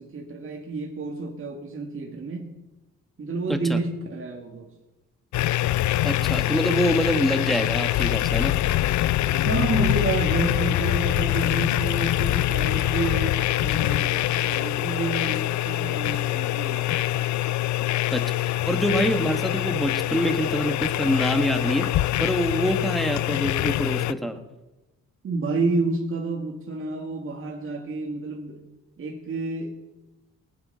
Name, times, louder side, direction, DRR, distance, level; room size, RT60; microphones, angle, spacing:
voice 1, 0.0-2.5 3.2-4.7 9.1-17.1 24.1-24.2 25.2-28.6 29.0-29.8, right 3 dB, 45° right, 0 dB, 2.0 m, -30 dB
sound 1, 5.3-24.1, left 15 dB, 70° left, 0.5 m, -24 dB
voice 2, 6.0-8.6 18.1-21.9 22.2-24.4, equal, ahead, 6 dB, 1.4 m, -25 dB
19.0 x 7.8 x 5.7 m, 1.0 s
cardioid pair, 90°, 30 cm